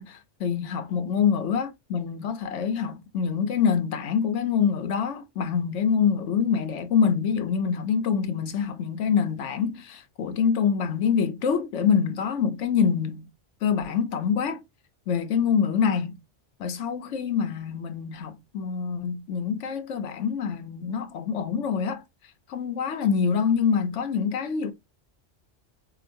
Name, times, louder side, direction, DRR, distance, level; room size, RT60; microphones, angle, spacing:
voice 1, 0.0-13.3 13.6-14.6 15.1-16.2 16.6-22.0 22.5-24.7, left 7 dB, 90° left, 1.1 m, -25 dB
4.8 x 2.5 x 2.5 m
omnidirectional pair, 1.2 m